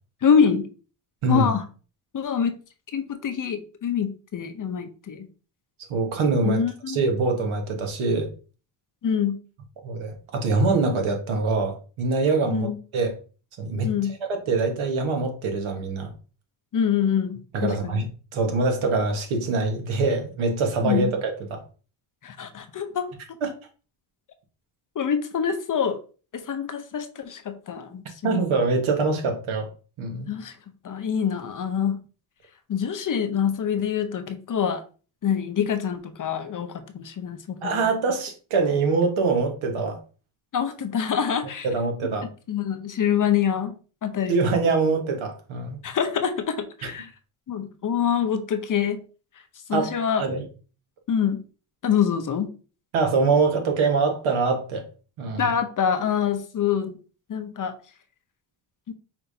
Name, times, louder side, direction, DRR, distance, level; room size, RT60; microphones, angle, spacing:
voice 1, 0.2-0.7 1.3-1.6 2.1-2.5 2.9-5.3 6.4-7.0 9.0-9.4 12.5-12.8 13.8-14.1 16.7-18.0 20.8-21.1 22.2-23.4 25.0-26.0 26.3-28.4 30.3-30.5 30.8-32.0 32.7-34.8 35.2-37.9 40.5-41.7 42.5-43.7 44.0-44.5 45.8-47.1 47.5-49.0 49.7-50.2 51.1-51.4 51.8-52.5 55.4-56.9 57.3-57.7 58.9-59.0, left 7 dB, 40° left, 0.7 m, -25 dB
voice 2, 5.9-8.3 9.8-13.2 13.6-13.9 14.3-16.1 17.5-18.1 18.3-21.6 23.4-23.6 28.2-29.7 30.0-30.3 37.6-40.0 41.6-42.3 44.3-45.8 46.8-46.9 49.7-49.9 50.2-50.4 52.9-54.9 55.2-55.5, right 3 dB, 70° right, 1.4 m, -24 dB
5.8 x 3.4 x 2.6 m
cardioid pair, 105°, 49 cm